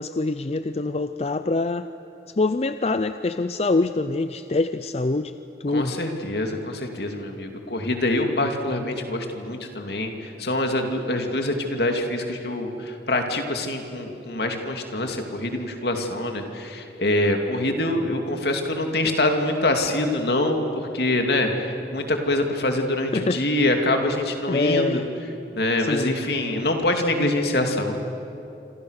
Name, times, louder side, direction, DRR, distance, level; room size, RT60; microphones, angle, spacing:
voice 1, 0.0-1.9 2.3-5.3 5.6-6.0 23.1-23.4 24.5-25.1 25.8-26.2, left 3 dB, 35° left, 11 dB, 0.5 m, -24 dB
voice 2, 5.7-25.0 25.5-27.9, left 1 dB, 65° left, 4 dB, 2.6 m, -25 dB
27.0 x 26.5 x 6.6 m, 2.9 s
head